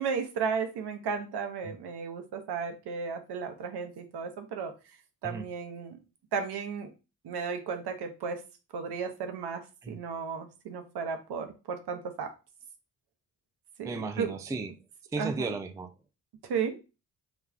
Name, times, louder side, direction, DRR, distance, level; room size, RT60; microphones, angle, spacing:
voice 1, 0.0-4.7 5.2-6.0 6.3-6.9 7.2-8.4 8.7-12.3 13.8-14.3 15.2-15.6 16.4-16.8, right 6 dB, 65° right, 6 dB, 0.7 m, -34 dB
voice 2, 13.8-14.7 15.1-15.9, right 3 dB, 10° right, 8 dB, 0.3 m, -34 dB
2.3 x 2.3 x 3.2 m, 0.30 s
supercardioid pair, 40°, 42 cm